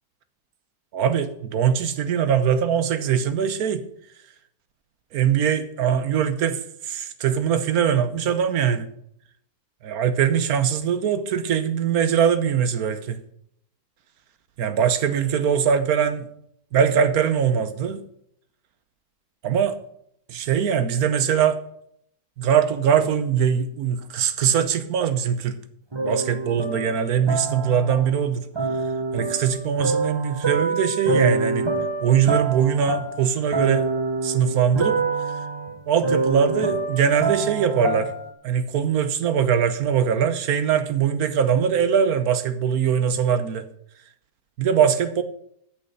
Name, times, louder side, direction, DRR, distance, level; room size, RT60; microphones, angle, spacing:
voice 1, 0.9-3.8 5.1-6.6 6.8-8.9 9.8-13.2 14.6-16.3 16.7-18.0 19.4-19.8 20.3-21.6 22.4-25.6 26.0-28.4 29.1-31.7 32.0-33.8 34.2-35.0 35.9-38.1 38.4-43.6 44.6-45.2, right 8 dB, 70° right, 1.3 m, -22 dB
sound 1, 25.9-28.2 28.6-38.3, right 3 dB, 20° right, 0.8 m, -26 dB
8.4 x 6.7 x 7.9 m
omnidirectional pair, 1.7 m